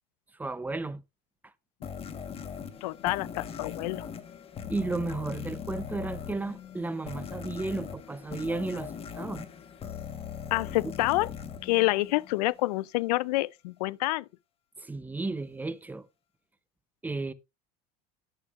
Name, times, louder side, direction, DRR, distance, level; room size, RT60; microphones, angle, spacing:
voice 1, 0.3-1.0 1.4-1.5 4.7-9.5 14.8-16.1 17.0-17.3, right 3 dB, 10° right, 0.5 m, -33 dB
sound 1, 1.8-12.6, left 7 dB, 30° left, 1.2 m, -40 dB
voice 2, 2.8-4.1 10.5-11.3 11.6-14.2, left 20 dB, 90° left, 0.4 m, -27 dB
11.0 x 7.8 x 2.4 m
supercardioid pair, 130°, 20 cm